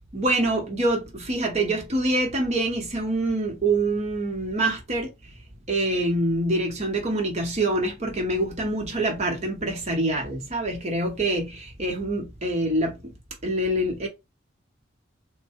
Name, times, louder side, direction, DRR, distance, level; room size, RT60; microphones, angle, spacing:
voice 1, 0.1-5.1 5.7-13.1 13.4-14.1, right 1 dB, 35° right, 0.8 m, -25 dB
3.1 x 2.1 x 2.7 m
head